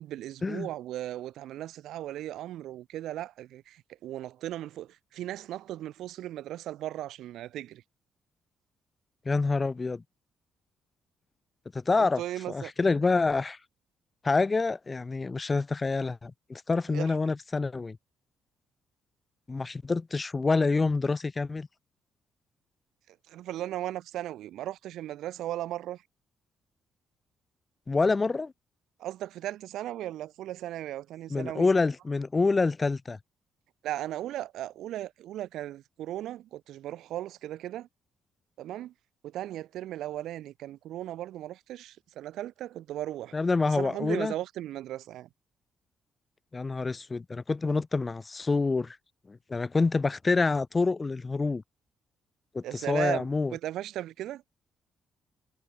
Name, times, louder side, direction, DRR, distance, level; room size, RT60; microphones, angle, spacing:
voice 1, 0.0-7.8 12.0-12.7 16.9-17.1 23.1-26.0 29.0-31.7 33.8-37.9 38.6-38.9 39.2-43.4 43.7-45.3 52.6-54.4, right 13 dB, 80° right, 1.1 m, -37 dB
voice 2, 9.3-10.0 11.9-12.2 12.5-13.6 14.2-18.0 19.5-21.7 27.9-28.5 31.3-33.2 43.3-44.3 46.5-49.0 49.3-51.6 52.5-53.5, left 3 dB, 25° left, 0.6 m, -27 dB
cardioid pair, 90°, 0 cm